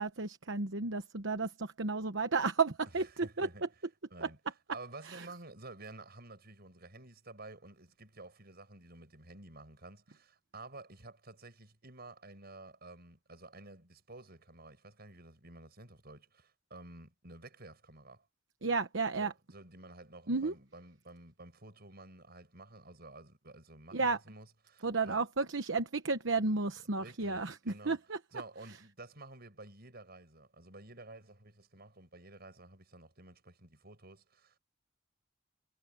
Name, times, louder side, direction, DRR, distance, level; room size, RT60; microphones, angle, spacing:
voice 1, 0.0-3.7 4.2-4.3 5.1-5.3 18.6-19.3 20.3-20.5 23.9-24.2 24.8-27.5 27.8-28.2, right 4 dB, 65° right, 1.1 m, -32 dB
voice 2, 3.0-3.7 4.1-4.4 4.7-18.3 19.2-25.2 27.0-28.0 28.3-34.6, right 2 dB, 50° right, 7.0 m, -52 dB
head